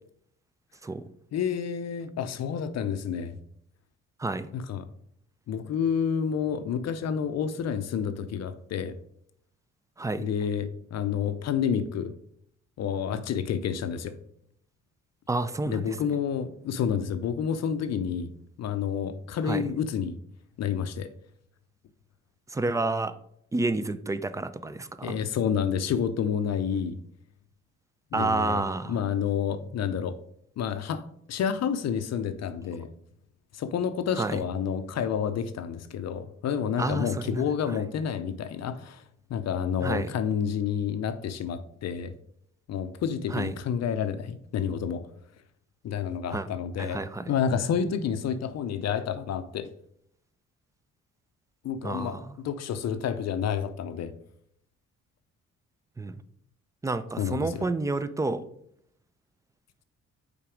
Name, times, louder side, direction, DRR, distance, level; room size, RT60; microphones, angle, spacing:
voice 1, 1.3-3.4 4.5-4.9 5.5-9.0 10.2-12.2 12.8-14.2 15.7-18.3 18.6-20.2 20.6-21.1 25.0-27.0 28.1-28.6 28.9-30.2 30.6-32.9 33.5-39.0 39.3-42.1 42.7-45.1 45.8-47.0 47.3-49.7 51.6-54.1 57.2-57.7, left 7 dB, 60° left, 11 dB, 0.6 m, -29 dB
voice 2, 4.2-4.5 10.0-10.3 15.3-15.9 19.5-19.6 22.5-23.1 23.5-25.2 28.1-28.9 34.2-34.4 36.8-37.4 39.8-40.1 43.3-43.5 46.3-46.5 46.8-47.2 51.8-52.3 56.0-56.2 56.8-58.4, right 2 dB, 10° right, 13 dB, 0.4 m, -29 dB
5.7 x 4.0 x 4.9 m, 0.70 s
cardioid pair, 90°, 30 cm